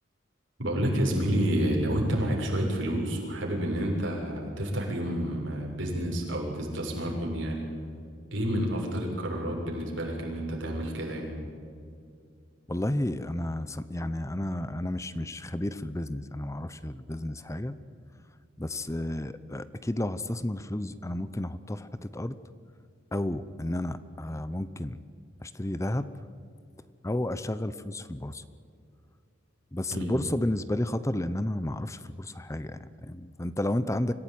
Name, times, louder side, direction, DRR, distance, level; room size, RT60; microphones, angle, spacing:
voice 1, 0.6-7.7 8.3-11.4 29.9-30.2, equal, 80° right, -1 dB, 7.0 m, -29 dB
voice 2, 12.7-17.8 18.6-22.4 23.1-25.0 25.4-26.1 27.0-28.4 29.7-34.1, left 1 dB, 15° left, 14 dB, 0.8 m, -32 dB
26.0 x 16.5 x 9.2 m, 2.4 s
head